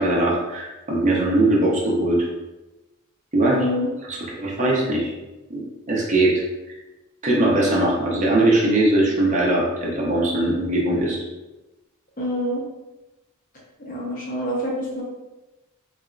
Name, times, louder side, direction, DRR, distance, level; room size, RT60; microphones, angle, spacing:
voice 1, 0.0-2.2 3.3-3.6 4.3-5.1 5.5-6.4 7.2-11.2, right 1 dB, 35° right, -4 dB, 0.8 m, -20 dB
voice 2, 3.5-3.9 12.2-12.6 13.8-15.0, equal, 40° left, -4 dB, 1.0 m, -26 dB
4.1 x 3.5 x 2.5 m, 1.1 s
head